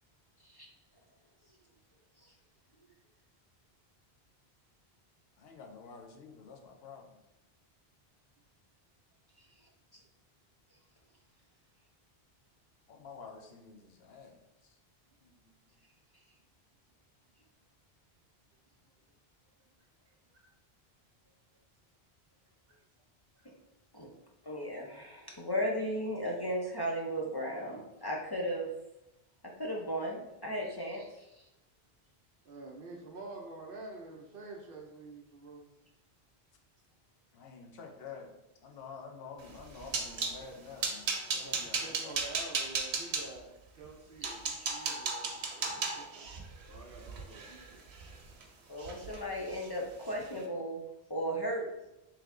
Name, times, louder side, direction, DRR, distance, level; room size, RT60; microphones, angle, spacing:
voice 1, 5.4-7.1 12.9-14.8 15.2-15.5 37.3-38.3 38.6-42.1, left 5 dB, 70° left, 2 dB, 0.8 m, -49 dB
voice 2, 24.5-28.7 29.6-31.3 44.2-44.3 48.7-50.8 51.1-51.6, equal, 35° left, -2 dB, 0.4 m, -35 dB
voice 3, 32.4-35.8 41.3-46.3 46.7-48.2, right 3 dB, 65° right, 1 dB, 0.7 m, -48 dB
sound 1, 39.5-40.4 40.8-43.2 43.8-43.9 44.2-48.4 48.8-49.2 49.5-49.7 50.1-50.2, right 4 dB, 85° right, 0.9 m, -35 dB
3.4 x 3.1 x 3.6 m, 0.92 s
omnidirectional pair, 1.1 m